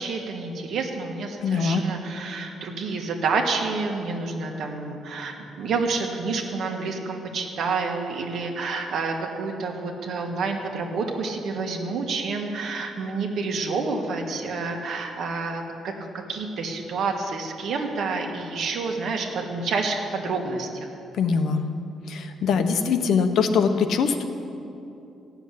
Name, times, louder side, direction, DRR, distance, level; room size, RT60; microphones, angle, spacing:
voice 1, 0.0-20.9, right 4 dB, 60° right, 2 dB, 1.7 m, -29 dB
voice 2, 1.4-1.8 21.2-21.6 22.1-24.2, left 5 dB, 60° left, 7 dB, 1.0 m, -22 dB
15.0 x 7.2 x 9.8 m, 2.8 s
cardioid pair, 155°, 0 cm